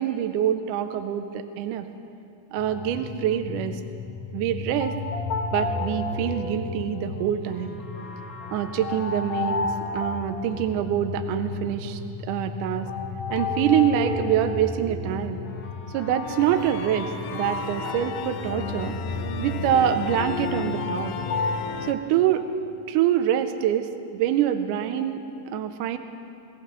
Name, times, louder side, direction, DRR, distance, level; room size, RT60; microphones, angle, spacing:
voice 1, 0.0-1.9 2.5-3.8 4.3-5.0 5.5-7.8 8.5-9.7 9.9-12.9 13.3-15.4 15.9-19.0 19.4-21.1 21.8-22.4 22.9-26.0, right 10 dB, 80° right, 8 dB, 1.9 m, -25 dB
sound 1, 2.6-21.6, left 3 dB, 65° left, 2.1 m, -32 dB
sound 2, 16.2-21.9, left 7 dB, 80° left, 1.7 m, -34 dB
22.0 x 15.5 x 3.1 m, 2.6 s
omnidirectional pair, 4.1 m